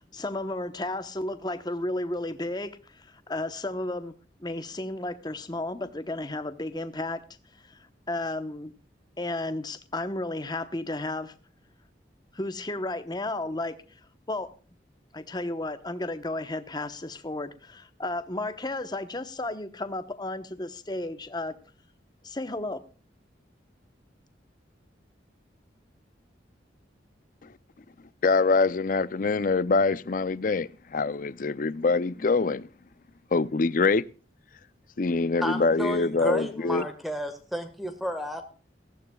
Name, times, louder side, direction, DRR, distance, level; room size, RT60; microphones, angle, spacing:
voice 1, 0.0-4.1 4.4-7.2 7.6-8.7 9.2-11.3 12.3-13.8 14.3-14.5 15.1-21.6 22.2-22.8, left 2 dB, 25° left, 1.0 m, -33 dB
voice 2, 28.2-32.7 33.3-34.1 35.0-36.8, left 4 dB, 45° left, 0.5 m, -24 dB
voice 3, 35.4-38.4, equal, ahead, 1.5 m, -32 dB
19.5 x 15.0 x 2.3 m
head